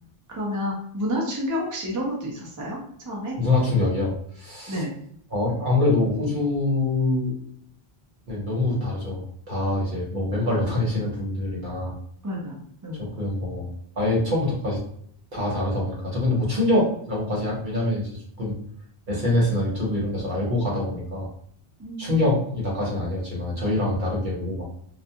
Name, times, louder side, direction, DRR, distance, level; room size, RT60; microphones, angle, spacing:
voice 1, 0.3-2.8 3.0-3.4 4.7-4.9 12.2-13.0 21.8-22.3, equal, 25° right, -2 dB, 0.4 m, -30 dB
voice 2, 3.4-4.8 5.3-7.3 8.3-11.9 12.9-13.7 14.0-14.8 15.3-18.1 18.4-18.5 19.1-21.3 22.0-24.6, left 2 dB, 55° right, -4 dB, 1.0 m, -25 dB
2.4 x 2.2 x 2.7 m, 0.67 s
omnidirectional pair, 1.1 m